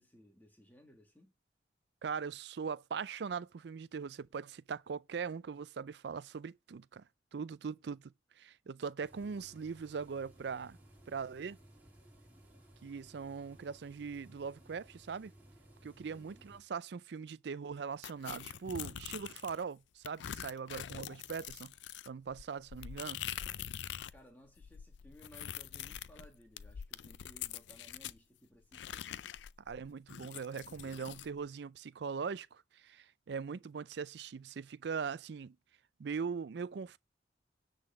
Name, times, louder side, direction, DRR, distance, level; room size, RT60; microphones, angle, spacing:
voice 1, 0.0-1.3 16.0-16.5 24.1-29.3, equal, 10° left, 1.9 m, -60 dB
voice 2, 2.0-7.0 7.3-8.1 8.4-10.8 11.1-11.6 12.8-15.3 15.8-21.7 22.1-23.2 29.7-35.6 36.0-37.0, right 5 dB, 65° right, 0.4 m, -41 dB
sound 1, 9.0-16.6, right 1 dB, 10° right, 2.5 m, -59 dB
sound 2, 18.0-19.6 20.0-24.2 24.5-28.2 28.7-31.3, left 10 dB, 75° left, 0.4 m, -44 dB
9.7 x 3.9 x 6.8 m
head